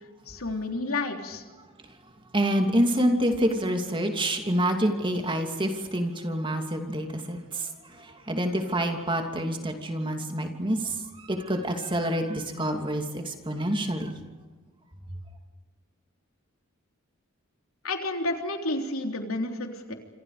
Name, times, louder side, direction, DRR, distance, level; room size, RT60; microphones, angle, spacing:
voice 1, 0.3-1.4 17.8-19.9, left 2 dB, 85° left, 3 dB, 3.5 m, -30 dB
voice 2, 2.3-14.1, right 1 dB, 25° right, 4 dB, 2.8 m, -27 dB
27.0 x 27.0 x 5.1 m, 1.4 s
head